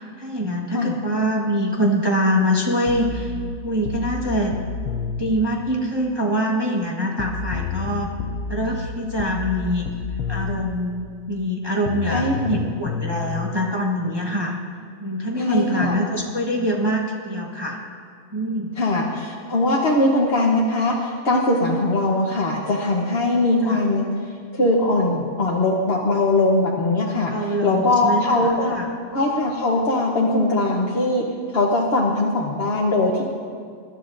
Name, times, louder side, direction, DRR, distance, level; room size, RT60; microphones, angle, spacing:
voice 1, 0.0-3.3 3.6-4.5 5.2-8.1 8.5-9.9 10.3-14.5 15.0-17.8 18.3-18.7 23.7-23.8 27.3-28.9, equal, 20° right, -2 dB, 1.1 m, -24 dB
sound 1, 2.9-5.4 7.2-10.8 11.9-13.5, left 5 dB, 80° left, 1.1 m, -29 dB
voice 2, 12.1-12.6 15.4-16.0 18.8-24.1 24.5-27.3 27.6-28.8 29.1-31.2 31.5-33.2, left 2 dB, 50° left, -3 dB, 1.2 m, -21 dB
22.5 x 12.0 x 2.6 m, 2.2 s
omnidirectional pair, 1.5 m